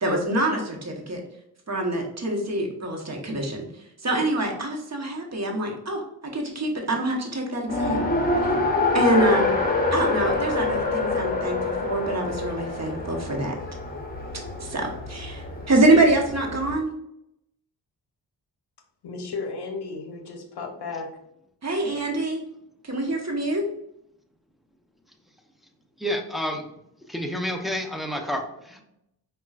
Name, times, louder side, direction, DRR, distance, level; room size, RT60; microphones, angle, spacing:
voice 1, 0.0-1.2 1.7-8.0 8.9-9.6 9.9-13.6 14.6-16.9 21.6-22.4 22.8-23.6, right 1 dB, 35° right, 0 dB, 1.1 m, -25 dB
Race car auto racing, 7.7-16.8, left 2 dB, 20° left, 1.1 m, -26 dB
voice 2, 19.0-21.2, left 4 dB, 60° left, 5 dB, 0.7 m, -34 dB
voice 3, 26.0-26.6 27.1-28.8, equal, ahead, 3 dB, 0.7 m, -29 dB
5.3 x 2.4 x 2.4 m, 0.79 s
supercardioid pair, 50°, 45 cm